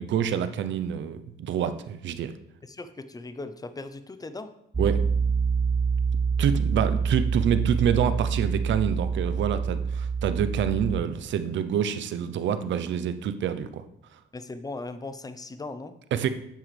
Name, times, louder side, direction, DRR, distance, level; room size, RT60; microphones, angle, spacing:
voice 1, 0.0-2.4 4.8-5.0 6.4-13.8 16.1-16.3, right 8 dB, 70° right, 11 dB, 0.7 m, -27 dB
voice 2, 2.6-4.5 14.3-15.9, left 3 dB, 20° left, 10 dB, 0.7 m, -38 dB
Piano, 4.7-11.0, right 5 dB, 20° right, 0.5 m, -26 dB
9.1 x 7.3 x 3.4 m, 0.79 s
cardioid pair, 90°, 20 cm